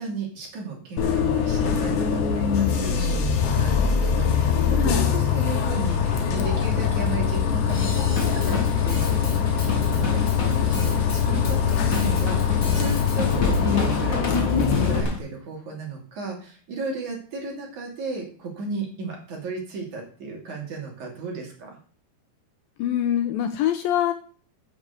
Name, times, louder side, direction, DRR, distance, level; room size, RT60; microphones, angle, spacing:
voice 1, 0.0-21.7, right 4 dB, 50° right, 0 dB, 4.0 m, -34 dB
Bus, 1.0-15.0, left 7 dB, 60° left, 2.5 m, -22 dB
Drum kit / Drum, 7.7-15.2, left 4 dB, 30° left, 1.7 m, -31 dB
voice 2, 22.8-24.1, left 11 dB, 75° left, 8 dB, 2.3 m, -24 dB
9.5 x 6.5 x 8.3 m, 0.42 s
omnidirectional pair, 4.7 m